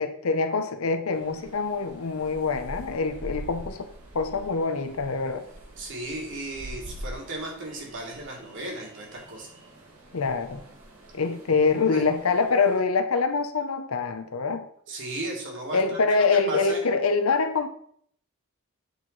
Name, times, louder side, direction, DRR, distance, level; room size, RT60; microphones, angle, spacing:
voice 1, 0.0-3.9 4.1-5.4 10.1-10.6 11.1-14.6 15.7-17.7, left 4 dB, 70° left, 9 dB, 0.7 m, -25 dB
sound 1, 1.1-12.8, right 1 dB, 80° right, 2.0 m, -44 dB
voice 2, 5.8-9.5 11.9-12.0 14.9-16.0 16.3-16.8, right 2 dB, 60° right, 0 dB, 2.0 m, -35 dB
8.0 x 4.6 x 4.0 m, 0.64 s
head